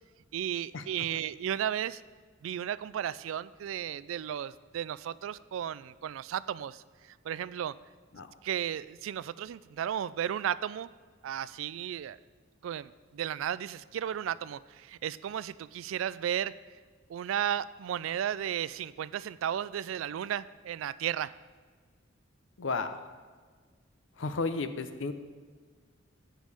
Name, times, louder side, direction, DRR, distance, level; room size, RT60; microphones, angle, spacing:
voice 1, 0.3-2.0 2.4-7.7 8.4-10.9 11.2-12.2 12.6-16.5 17.1-21.3, right 10 dB, 85° right, 17 dB, 0.3 m, -34 dB
voice 2, 22.6-23.0 24.2-25.1, left 3 dB, 75° left, 10 dB, 0.7 m, -33 dB
11.5 x 9.0 x 3.4 m, 1.5 s
head